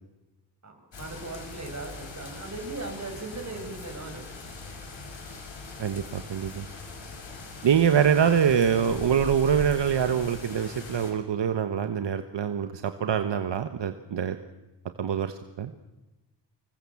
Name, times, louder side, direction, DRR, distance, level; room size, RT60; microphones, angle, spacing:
voice 1, 0.6-4.2, right 3 dB, 40° right, 3 dB, 7.0 m, -38 dB
sound 1, 0.9-11.1, left 3 dB, 90° left, 5.8 m, -41 dB
voice 2, 5.8-6.6 7.6-14.4 15.0-15.7, right 8 dB, 80° right, 9 dB, 1.3 m, -25 dB
26.0 x 21.0 x 7.2 m, 1.0 s
wide cardioid pair, 95°, 43 cm